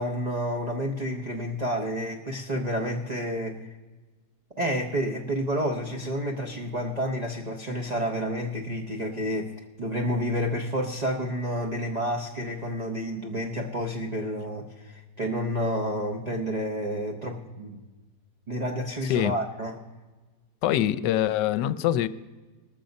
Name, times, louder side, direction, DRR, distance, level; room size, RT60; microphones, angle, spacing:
voice 1, 0.0-3.7 4.6-9.5 9.8-17.8 18.5-19.8, equal, 40° right, 1 dB, 0.6 m, -30 dB
voice 2, 20.6-22.1, left 12 dB, 80° left, 15 dB, 1.2 m, -24 dB
19.5 x 6.9 x 5.2 m, 1.2 s
omnidirectional pair, 1.9 m